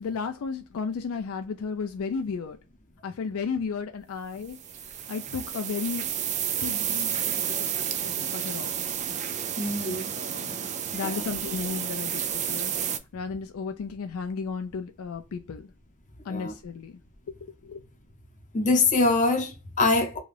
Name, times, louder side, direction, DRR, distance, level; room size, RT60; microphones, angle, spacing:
voice 1, 0.0-2.6 3.0-4.6 5.1-6.1 6.6-7.7 8.0-8.7 10.3-10.6 10.9-12.7 13.1-15.7 16.2-17.0 17.4-17.8, left 5 dB, 70° left, 0.4 m, -33 dB
sound 1, 4.5-13.0, right 9 dB, 35° right, 0.3 m, -31 dB
voice 2, 9.6-10.0 11.0-11.2 16.3-16.5 18.5-20.2, left 3 dB, 35° left, 0.7 m, -24 dB
2.4 x 2.3 x 3.2 m
head